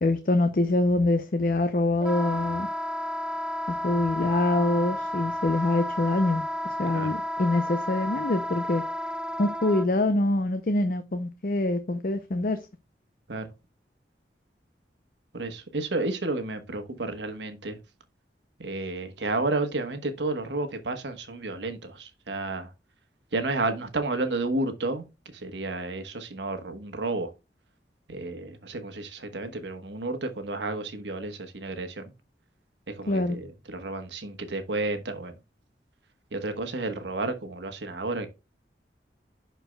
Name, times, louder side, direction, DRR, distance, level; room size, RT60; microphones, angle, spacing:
voice 1, 0.0-2.7 3.7-8.8 9.4-12.7 33.1-33.4, left 2 dB, 50° left, 0.6 m, -25 dB
Wind instrument woodwind instrument, 2.0-9.9, left 1 dB, 5° right, 0.3 m, -32 dB
voice 2, 15.3-17.8 18.6-22.7 23.3-27.3 28.1-32.1 32.9-35.4 36.3-38.3, right 2 dB, 85° right, 1.2 m, -31 dB
11.5 x 4.5 x 2.2 m
head